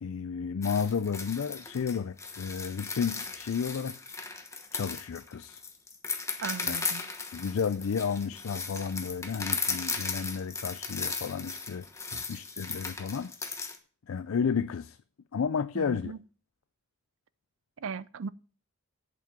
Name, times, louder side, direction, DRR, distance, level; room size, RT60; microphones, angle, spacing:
voice 1, 0.0-4.0 4.7-5.6 6.7-6.8 7.3-11.9 12.3-13.3 14.1-15.0 15.3-16.1, left 6 dB, 70° left, 0.4 m, -32 dB
sound 1, 0.6-13.8, left 4 dB, 15° left, 1.1 m, -36 dB
voice 2, 6.4-7.1 12.1-12.2 15.7-16.2 17.8-18.3, right 5 dB, 65° right, 0.5 m, -38 dB
8.2 x 7.3 x 7.4 m
head